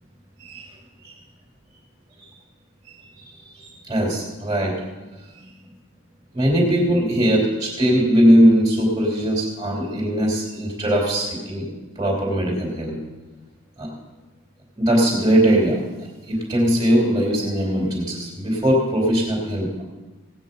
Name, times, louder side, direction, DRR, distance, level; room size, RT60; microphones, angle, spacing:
voice 1, 2.9-4.8 6.3-11.7 12.0-13.0 13.8-13.9 14.8-15.8 16.3-19.8, equal, 15° right, -2 dB, 2.9 m, -20 dB
16.5 x 9.0 x 5.4 m, 1.2 s
head